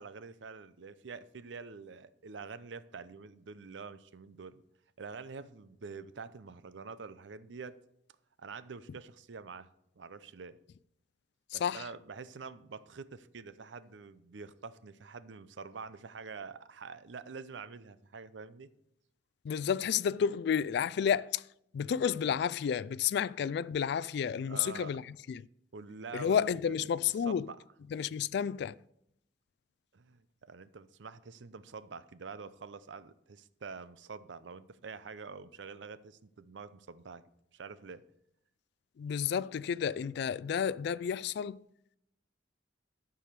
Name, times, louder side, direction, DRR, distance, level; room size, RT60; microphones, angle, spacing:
voice 1, 0.0-4.6 5.0-7.8 8.4-10.6 11.5-18.7 24.5-24.9 25.7-26.8 27.3-27.6 29.9-37.2 37.5-38.0, right 5 dB, 75° right, 0.6 m, -46 dB
voice 2, 11.5-11.8 19.4-21.4 21.7-25.4 26.1-27.5 27.9-28.7 39.0-41.6, left 7 dB, 60° left, 0.3 m, -31 dB
12.0 x 4.8 x 6.6 m
head